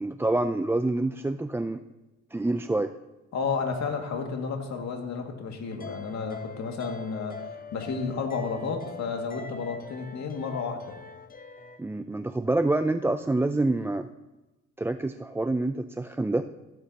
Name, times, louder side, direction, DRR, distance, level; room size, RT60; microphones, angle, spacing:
voice 1, 0.0-1.8 2.3-2.9 11.8-14.1 14.8-16.5, right 2 dB, 10° right, 9 dB, 0.3 m, -27 dB
voice 2, 3.3-11.0, left 5 dB, 65° left, 3 dB, 2.1 m, -32 dB
sound 1, 5.7-11.8, left 5 dB, 30° left, 0.8 m, -43 dB
15.5 x 13.0 x 2.9 m, 1.1 s
cardioid pair, 90°, 30 cm